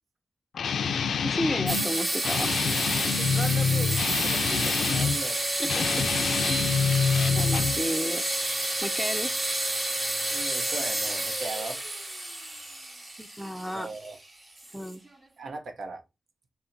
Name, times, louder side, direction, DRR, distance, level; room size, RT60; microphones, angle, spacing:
Guitar, 0.5-1.9 2.2-5.2 5.6-7.8, left 6 dB, 85° left, 0.3 m, -26 dB
voice 1, 1.2-2.6 5.6-6.0 7.3-8.2 8.8-9.3 13.2-13.9 14.7-15.0, equal, 5° left, 0.5 m, -32 dB
sound 1, 1.7-15.1, right 1 dB, 40° right, 1.4 m, -30 dB
voice 2, 3.3-5.5 10.2-11.8 13.7-14.2 15.4-16.0, right 3 dB, 75° right, 0.7 m, -38 dB
4.2 x 2.1 x 3.8 m
cardioid pair, 55°, 0 cm